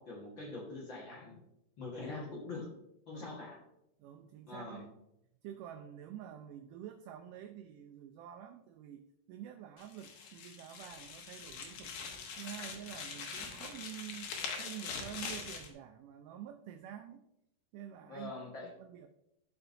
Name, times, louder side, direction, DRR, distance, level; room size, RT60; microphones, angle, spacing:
voice 1, 0.0-1.4 1.8-2.7 3.1-3.6 4.5-4.8 18.1-18.7, left 3 dB, 50° left, -3 dB, 1.6 m, -43 dB
voice 2, 4.0-4.9 5.4-12.0 12.4-17.2 17.7-18.3 18.6-19.1, right 10 dB, 80° right, 7 dB, 1.9 m, -48 dB
sound 1, 9.8-15.7, left 5 dB, 75° left, 2.6 m, -43 dB
13.0 x 5.2 x 2.6 m, 0.84 s
omnidirectional pair, 4.1 m